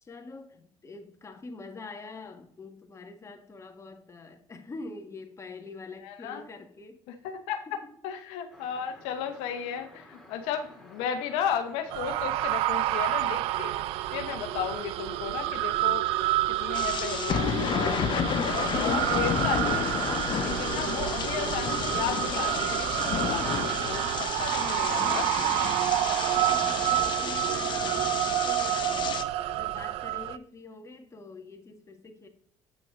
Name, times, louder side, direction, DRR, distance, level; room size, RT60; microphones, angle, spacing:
voice 1, 0.0-7.0 7.8-7.9 25.7-32.3, left 3 dB, 30° left, 1.6 m, -45 dB
voice 2, 6.0-6.4 7.1-13.7 14.1-19.9 20.4-25.7, left 8 dB, 80° left, 0.9 m, -35 dB
sound 1, 8.5-23.6, left 1 dB, ahead, 2.9 m, -53 dB
sound 2, 11.9-30.4, right 15 dB, 75° right, 0.4 m, -29 dB
sound 3, 16.7-29.2, left 8 dB, 55° left, 0.8 m, -31 dB
8.4 x 6.1 x 3.7 m
supercardioid pair, 70°, 10 cm